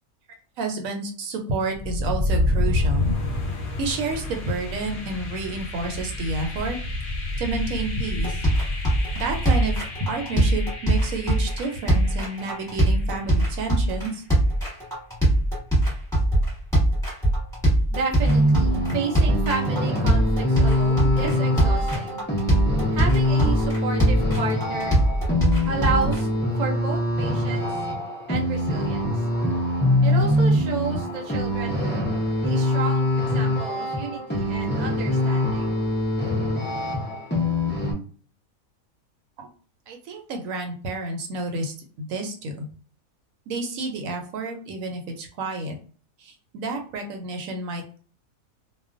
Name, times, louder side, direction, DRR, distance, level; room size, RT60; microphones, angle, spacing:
voice 1, 0.6-3.2 3.8-6.8 7.4-8.5 9.2-14.2 39.4-39.5 39.9-42.7 43.5-45.8 46.2-48.0, right 3 dB, 75° right, 3 dB, 1.0 m, -30 dB
sound 1, 1.7-13.6, left 1 dB, 50° left, 0.7 m, -29 dB
sound 2, 8.1-26.2, right 1 dB, ahead, 1.1 m, -22 dB
voice 2, 17.9-22.2 22.9-25.0 25.7-27.8 28.3-29.1 30.0-31.8 32.4-35.8, right 4 dB, 55° right, 0 dB, 0.4 m, -31 dB
sound 3, 18.2-37.9, left 1 dB, 15° left, 0.3 m, -24 dB
2.3 x 2.1 x 2.4 m, 0.41 s
omnidirectional pair, 1.5 m